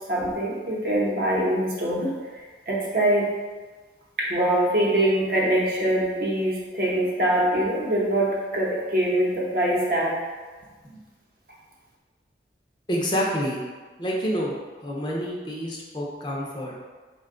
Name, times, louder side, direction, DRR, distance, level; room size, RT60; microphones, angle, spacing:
voice 1, 0.1-2.1 2.7-3.3 4.2-10.1, right 1 dB, 55° right, -4 dB, 0.8 m, -23 dB
voice 2, 12.9-13.6 14.0-14.5 14.8-16.8, equal, 25° left, -4 dB, 0.5 m, -28 dB
4.2 x 2.2 x 3.7 m, 1.4 s
head